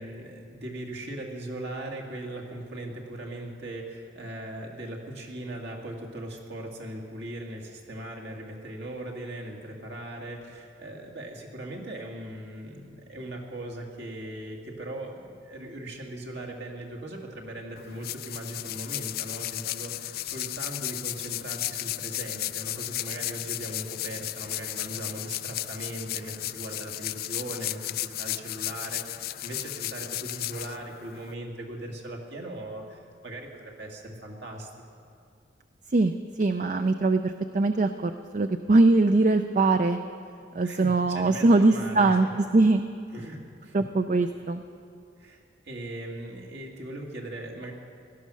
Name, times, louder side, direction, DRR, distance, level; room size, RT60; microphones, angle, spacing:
voice 1, 0.0-35.0 40.6-42.3 43.1-43.8 45.2-47.7, right 1 dB, 65° right, 0 dB, 2.1 m, -39 dB
sound 1, 17.8-31.3, left 15 dB, 55° left, 0.3 m, -34 dB
voice 2, 35.9-40.0 40.5-42.8 43.7-44.6, right 2 dB, 45° right, 9 dB, 0.4 m, -22 dB
17.0 x 12.0 x 6.3 m, 2.4 s
head